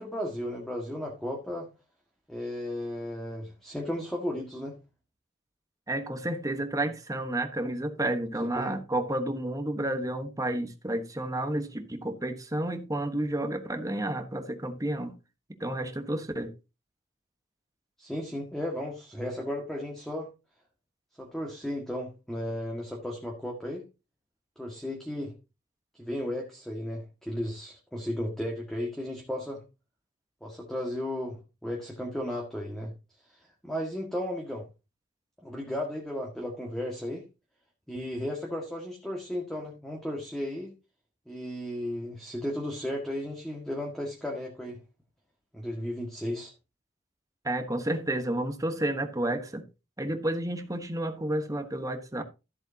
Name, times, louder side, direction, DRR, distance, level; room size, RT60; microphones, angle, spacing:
voice 1, 0.0-1.7 2.3-4.8 8.4-8.8 18.0-20.3 21.2-23.8 24.6-25.3 26.0-29.6 30.4-32.9 33.6-34.7 35.4-37.2 37.9-40.7 41.3-44.8 45.5-46.5, left 1 dB, ahead, 1.9 m, -34 dB
voice 2, 5.9-15.1 15.6-16.5 47.4-49.6 50.0-52.2, right 1 dB, 15° right, 1.2 m, -31 dB
13.5 x 7.9 x 2.9 m
head